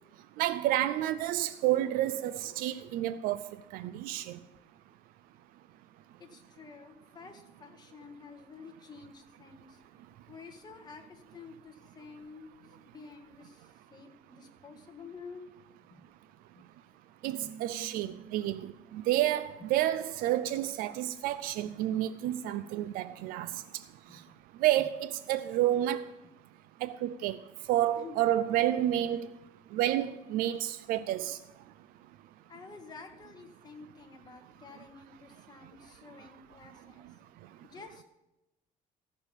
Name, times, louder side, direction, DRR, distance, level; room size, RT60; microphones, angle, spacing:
voice 1, 0.4-3.4 3.7-4.4 17.2-23.5 24.6-26.0 26.8-27.4 27.7-29.3 29.7-31.4, right 13 dB, 85° right, 0.5 m, -30 dB
voice 2, 6.2-9.8 10.3-12.5 12.9-15.4 15.9-16.0 16.5-16.6 17.4-17.5 24.1-24.3 28.0-28.2 32.5-37.1 37.6-38.0, left 4 dB, 30° left, 1.8 m, -50 dB
Keyboard (musical), 17.2-19.2, right 6 dB, 70° right, 1.3 m, -50 dB
14.0 x 5.4 x 8.3 m
cardioid pair, 120°, 14 cm